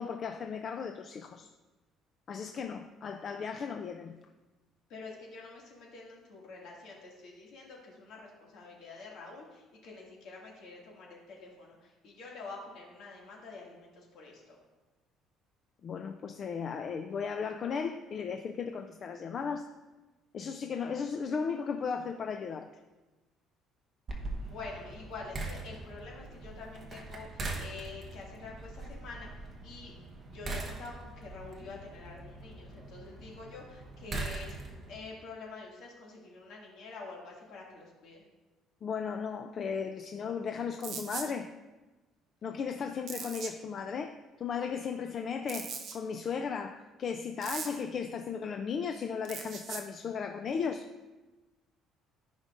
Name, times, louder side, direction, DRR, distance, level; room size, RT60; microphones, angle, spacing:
voice 1, 0.0-1.5 2.3-4.2 15.8-19.6 20.3-22.7 38.8-41.5 42.4-50.9, left 6 dB, 35° left, 6 dB, 0.3 m, -36 dB
voice 2, 4.9-14.6 24.4-29.9 30.3-34.6 34.9-38.2, left 3 dB, 60° left, -2 dB, 2.0 m, -47 dB
sound 1, 24.1-35.0, right 2 dB, 25° right, 1.0 m, -42 dB
sound 2, 40.8-41.3 43.1-43.5 45.5-46.0 47.4-47.8 49.2-49.8, right 6 dB, 45° right, 0.7 m, -39 dB
14.5 x 5.2 x 2.5 m, 1.2 s
cardioid pair, 165°, 0 cm